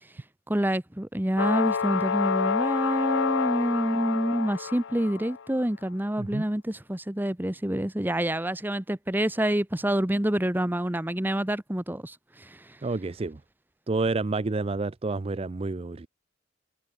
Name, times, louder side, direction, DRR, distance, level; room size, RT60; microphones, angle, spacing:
voice 1, 0.5-12.5, right 1 dB, 10° right, 1.0 m, -27 dB
sound 1, 1.4-5.4, left 6 dB, 80° left, 0.6 m, -28 dB
voice 2, 12.8-13.4 13.9-16.1, right 3 dB, 30° right, 0.5 m, -29 dB
head